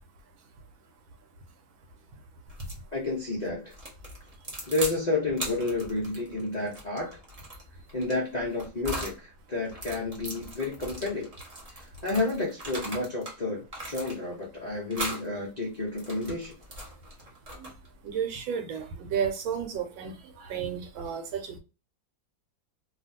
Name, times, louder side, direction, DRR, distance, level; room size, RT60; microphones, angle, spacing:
sound 1, 2.5-2.8 3.7-5.0 5.3-9.2 9.7-13.4 13.7-14.4 14.9-15.3 15.8-17.9, right 1 dB, 40° right, 0.5 m, -39 dB
voice 1, 2.9-3.7 4.7-7.2 7.9-11.3 11.7-16.5, left 2 dB, 75° left, 0.3 m, -31 dB
voice 2, 18.0-21.6, right 7 dB, 85° right, 1.4 m, -32 dB
3.0 x 2.4 x 2.6 m
omnidirectional pair, 2.1 m